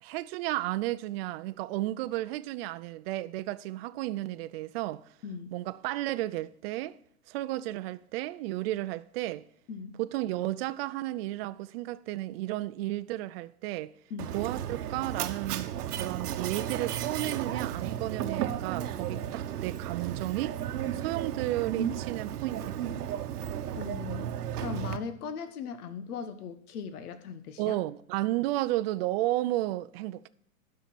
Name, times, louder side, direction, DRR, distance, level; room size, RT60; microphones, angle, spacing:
voice 1, 0.0-5.0 5.5-7.0 7.3-9.4 10.0-13.9 14.3-20.6 20.9-23.2 27.6-30.3, right 16 dB, 40° right, 0.5 m, -33 dB
voice 2, 5.2-5.5 9.7-10.0 14.1-14.4 23.7-24.3 24.6-27.8, left 6 dB, 75° left, 1.3 m, -39 dB
Mechanisms, 14.2-25.0, right 10 dB, 80° right, 1.0 m, -34 dB
12.0 x 5.6 x 6.0 m
hypercardioid pair, 135°, 46 cm